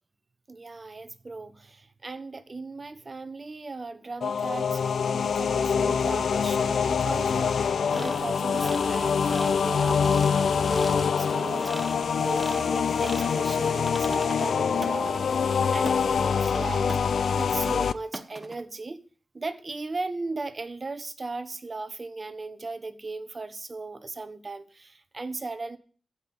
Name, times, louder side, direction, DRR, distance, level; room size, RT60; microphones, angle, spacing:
voice 1, 0.5-16.9 17.3-19.0 19.3-25.8, right 3 dB, 35° right, 1.2 m, -37 dB
sound 1, 4.2-17.9, left 6 dB, 75° left, 0.5 m, -25 dB
sound 2, 7.9-17.4 17.6-17.7 18.1-18.6, right 2 dB, 15° right, 1.0 m, -41 dB
15.0 x 5.8 x 8.7 m
wide cardioid pair, 105°, 0 cm